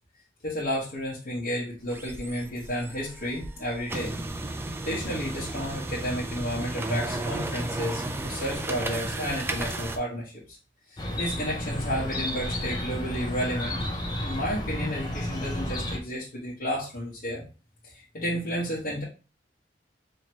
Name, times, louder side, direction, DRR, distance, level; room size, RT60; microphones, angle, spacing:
voice 1, 0.4-4.1 4.8-10.6 10.9-13.9 14.2-17.4 17.8-19.0, equal, 55° left, -7 dB, 1.0 m, -32 dB
sound 1, 1.8-10.0, right 2 dB, 15° right, 0.4 m, -34 dB
Chirp tweet, 11.0-16.0, left 1 dB, 25° left, 0.6 m, -32 dB
4.5 x 2.8 x 2.9 m, 0.34 s
head